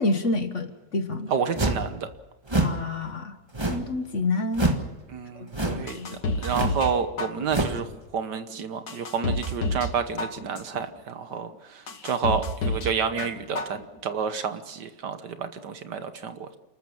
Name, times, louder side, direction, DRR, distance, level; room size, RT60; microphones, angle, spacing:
voice 1, 0.0-1.3 2.6-3.3 3.7-4.7 5.4-6.1, left 2 dB, 45° left, 8 dB, 1.5 m, -28 dB
voice 2, 1.3-2.1 5.1-7.9 8.1-16.6, right 6 dB, 70° right, 10 dB, 1.7 m, -30 dB
sound 1, 1.6-1.9 2.5-2.8 3.5-4.0 4.5-4.9 5.5-5.9 6.5-6.8 7.5-7.8, right 2 dB, 15° right, 1.5 m, -26 dB
sound 2, 5.9-6.9 7.2-7.8 8.3-8.4 8.9-9.9 10.2-10.8 11.3-11.4 11.9-12.9 13.2-13.8 14.1-14.2, left 2 dB, 60° left, 2.1 m, -29 dB
29.0 x 14.0 x 7.2 m, 1.1 s
omnidirectional pair, 1.9 m